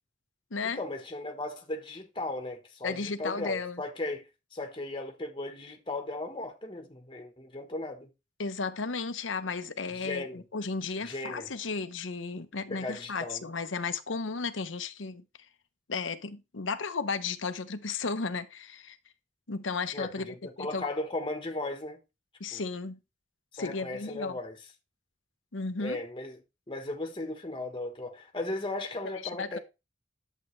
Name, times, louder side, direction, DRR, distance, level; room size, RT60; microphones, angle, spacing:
voice 1, 0.6-8.1 9.9-10.4 11.0-11.5 12.7-13.5 19.9-22.0 22.5-22.6 23.5-24.5 25.8-26.4 26.7-29.6, left 2 dB, 25° left, 1.2 m, -36 dB
voice 2, 2.8-3.8 8.4-15.2 15.9-19.0 19.5-20.9 22.4-23.0 23.5-24.4 25.5-26.0 29.1-29.6, left 4 dB, 90° left, 1.0 m, -34 dB
11.0 x 7.6 x 3.2 m
head